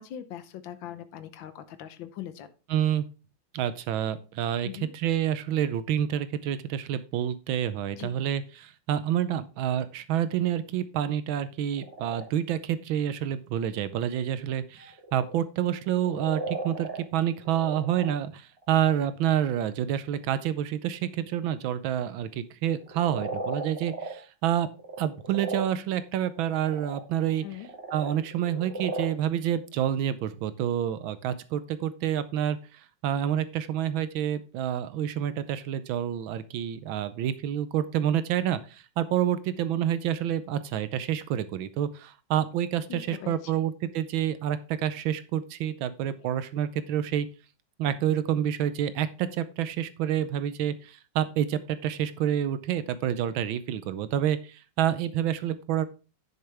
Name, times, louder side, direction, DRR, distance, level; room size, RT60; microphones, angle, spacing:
voice 1, 0.0-2.5 4.6-4.9 7.9-8.1 27.4-27.7 42.9-43.6, left 11 dB, 75° left, 10 dB, 1.6 m, -41 dB
voice 2, 2.7-3.1 3.5-24.7 25.0-27.4 27.9-47.3 47.8-55.8, right 10 dB, 80° right, 13 dB, 1.4 m, -28 dB
sound 1, 11.7-12.2 12.7-12.8 14.8-15.4 15.7-17.0 17.3-18.1 18.6-18.9 19.8-19.9 22.8-24.2 24.7-25.6 26.4-27.0 27.2-29.1 29.6-29.9, right 3 dB, 30° right, 2.3 m, -36 dB
10.5 x 6.6 x 3.4 m, 0.34 s
omnidirectional pair, 2.2 m